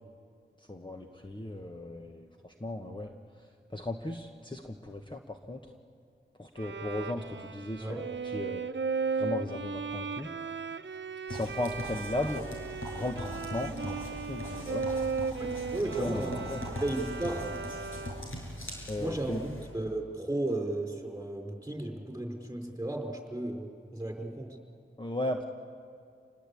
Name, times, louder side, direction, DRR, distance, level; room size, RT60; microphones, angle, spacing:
voice 1, 0.7-3.1 3.7-5.6 6.4-8.7 9.2-10.3 11.3-12.4 12.9-14.9 16.0-16.6 18.9-19.4 25.0-25.4, left 1 dB, 20° left, 3 dB, 1.3 m, -36 dB
Bowed string instrument, 6.6-18.4, right 5 dB, 65° right, 0.9 m, -36 dB
sound 1, 11.3-19.7, left 1 dB, 85° left, 6.5 m, -41 dB
voice 2, 15.4-16.3 16.8-17.5 19.0-24.6, right 2 dB, 15° right, 2 dB, 5.0 m, -34 dB
28.0 x 20.5 x 8.6 m, 2.4 s
wide cardioid pair, 50°, 21 cm